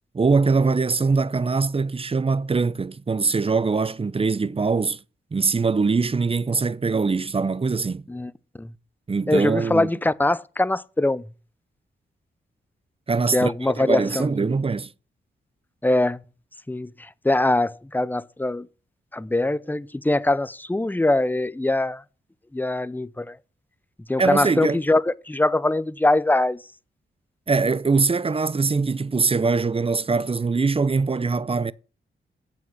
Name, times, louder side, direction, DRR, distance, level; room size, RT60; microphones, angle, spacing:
voice 1, 0.1-5.0 5.3-8.0 9.1-9.9 13.1-13.5 13.8-14.9 24.2-24.8 27.5-31.7, right 4 dB, 25° right, 0.6 m, -22 dB
voice 2, 9.3-11.2 13.3-14.3 15.8-16.2 16.7-18.7 19.1-22.0 22.5-23.4 24.1-26.6, left 2 dB, 10° left, 0.6 m, -22 dB
8.1 x 7.4 x 7.6 m
cardioid pair, 55°, 21 cm